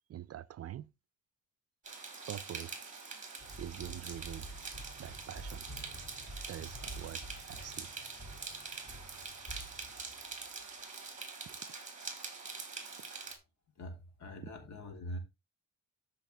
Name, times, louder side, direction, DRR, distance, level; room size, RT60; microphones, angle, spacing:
voice 1, 0.1-0.9 2.3-2.8 3.6-4.5 5.0-5.7 6.5-7.9 11.5-11.6 13.0-13.1, right 12 dB, 50° right, 0.5 m, -45 dB
sound 1, 1.8-13.3, right 4 dB, 25° right, 3.6 m, -45 dB
sound 2, 3.4-10.6, right 1 dB, 15° left, 2.6 m, -49 dB
voice 2, 13.8-15.2, equal, 60° left, 3.1 m, -43 dB
13.0 x 5.7 x 3.3 m
cardioid pair, 115°, 33 cm